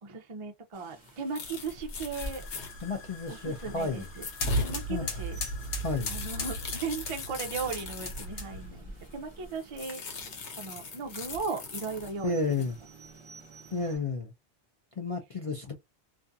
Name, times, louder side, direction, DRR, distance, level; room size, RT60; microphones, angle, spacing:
voice 1, 0.0-2.4 3.3-4.3 4.6-5.4 6.1-10.0 10.6-12.7 13.8-14.0, right 4 dB, 55° right, 0.3 m, -37 dB
Rain, 0.7-14.0, right 1 dB, 30° right, 0.8 m, -50 dB
sound 1, 1.1-1.2 1.4-3.4 3.8-8.4 9.0-9.1 9.5-12.1 12.5-12.7, left 5 dB, 85° left, 1.0 m, -42 dB
sound 2, 2.1-8.8, left 1 dB, 70° left, 1.0 m, -36 dB
voice 2, 2.8-4.0 4.9-5.0 5.8-6.1 12.2-12.8 13.7-14.3 15.0-15.7, left 3 dB, 50° left, 0.4 m, -31 dB
2.4 x 2.3 x 2.5 m
omnidirectional pair, 1.1 m